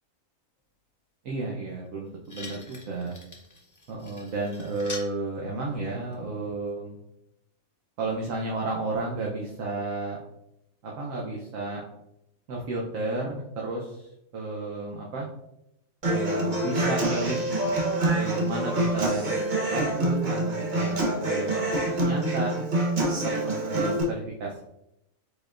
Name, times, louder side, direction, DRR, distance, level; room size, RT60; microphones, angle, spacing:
voice 1, 1.2-3.1 3.9-7.0 8.0-10.2 10.8-11.8 12.5-14.1 14.3-15.3 16.1-17.4 18.1-19.4 19.7-22.6 23.2-24.6, right 3 dB, 75° right, -2 dB, 1.1 m, -32 dB
sound 1, 1.8-1.9 2.2-5.1 6.1-6.2, left 3 dB, 25° left, 0.4 m, -43 dB
Human voice / Acoustic guitar, 16.0-24.0, right 1 dB, 40° right, 1.0 m, -26 dB
4.8 x 4.4 x 2.4 m, 0.85 s
omnidirectional pair, 1.4 m